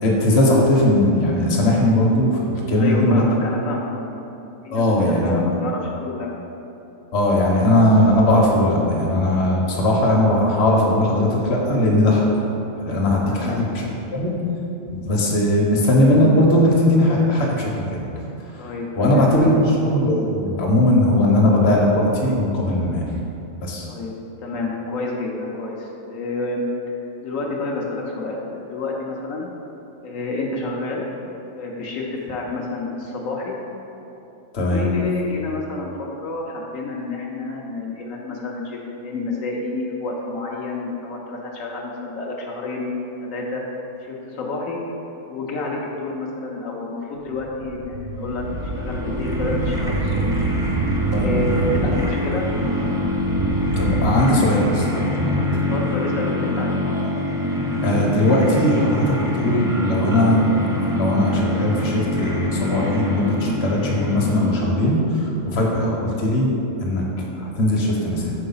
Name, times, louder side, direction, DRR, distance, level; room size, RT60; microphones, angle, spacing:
voice 1, 0.0-3.2 4.7-5.4 7.1-12.3 12.8-13.8 14.1-14.3 14.9-18.0 18.6-18.7 19.0-23.0 23.6-23.9 34.5-34.9 51.1-51.3 53.8-55.5 57.8-66.5 66.8-67.0 67.4-68.3, left 1 dB, 55° left, -2 dB, 1.1 m, -19 dB
voice 2, 2.8-4.2 4.6-6.3 13.3-13.7 18.6-19.6 23.9-24.1 24.4-26.7 27.2-29.5 30.0-31.1 31.5-33.6 34.6-42.9 43.2-43.6 44.0-44.8 45.3-48.4 48.8-50.4 51.1-52.5 55.5-56.8, left 3 dB, 80° left, -2 dB, 1.1 m, -29 dB
sound 1, 47.3-54.2, right 2 dB, 75° right, 0.9 m, -26 dB
sound 2, 48.2-64.9, left 1 dB, 5° right, 0.3 m, -25 dB
5.4 x 3.8 x 5.5 m, 2.9 s
omnidirectional pair, 1.4 m